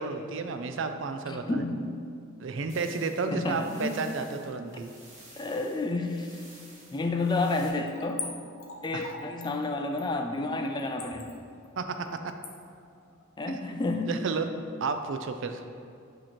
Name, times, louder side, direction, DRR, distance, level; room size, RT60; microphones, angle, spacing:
voice 1, 0.0-1.6 2.4-4.9 8.9-9.1 11.8-12.3 13.5-13.6 14.1-14.5 14.8-15.6, right 4 dB, 60° right, 7 dB, 0.4 m, -32 dB
voice 2, 1.3-1.9 3.3-3.9 5.4-6.4 6.9-8.2 8.8-11.3 13.4-14.1, left 2 dB, 20° left, 4 dB, 0.3 m, -30 dB
sound 1, 2.7-7.7, right 2 dB, 35° right, 1.5 m, -53 dB
Splash splatter / Trickle dribble, 7.9-14.3 14.6-14.7, left 4 dB, 75° left, 0.9 m, -43 dB
8.8 x 3.0 x 4.3 m, 2.4 s
head